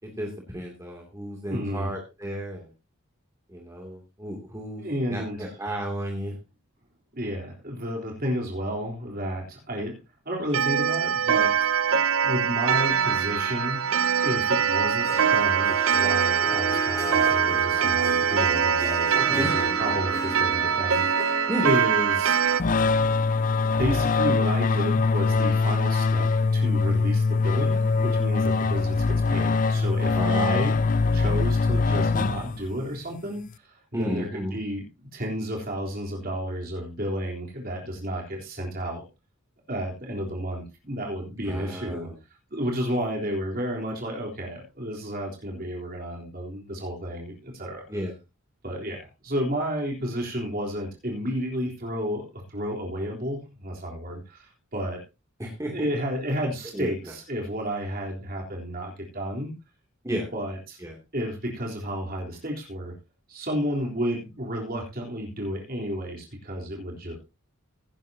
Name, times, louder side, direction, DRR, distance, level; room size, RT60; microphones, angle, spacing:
voice 1, 0.0-2.7 3.5-4.8 5.1-6.3 19.1-19.5 21.5-21.6 30.1-31.0 33.9-34.5 41.4-42.1 47.9-48.1 55.4-55.9 56.7-57.1 60.0-60.3 60.8-60.9, equal, 15° right, 0 dB, 2.7 m, -33 dB
voice 2, 1.5-1.9 4.8-5.5 7.1-10.0 10.3-13.9 14.2-22.4 23.7-30.8 31.1-39.0 39.7-42.1 42.5-47.8 48.6-55.0 55.7-59.5 60.3-60.8 61.1-62.9 63.3-67.2, equal, 45° right, 0 dB, 3.7 m, -31 dB
Clock, 10.5-22.6, right 7 dB, 75° right, 0.7 m, -23 dB
Harp, 14.8-23.8, left 1 dB, 15° left, 0.9 m, -36 dB
sound 1, 22.6-32.9, left 4 dB, 40° left, 0.5 m, -23 dB
17.0 x 11.0 x 2.8 m, 0.27 s
head